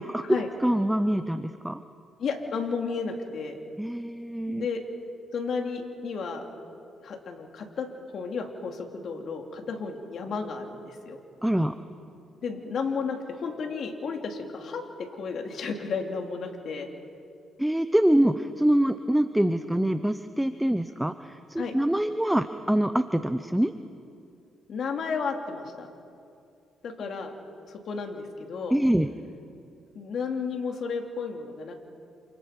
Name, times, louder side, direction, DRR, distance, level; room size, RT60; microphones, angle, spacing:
voice 1, 0.0-1.8 3.8-4.7 11.4-11.7 17.6-23.7 28.7-29.1, right 1 dB, 5° right, 10 dB, 0.8 m, -25 dB
voice 2, 2.2-3.6 4.5-4.8 5.3-6.4 7.0-7.9 8.1-11.2 12.4-14.8 15.1-16.9 21.6-21.7 24.7-25.9 26.8-27.3 27.7-28.8 29.9-31.7, left 5 dB, 60° left, 2 dB, 3.4 m, -32 dB
29.0 x 27.0 x 5.4 m, 2.5 s
cardioid pair, 90°, 0 cm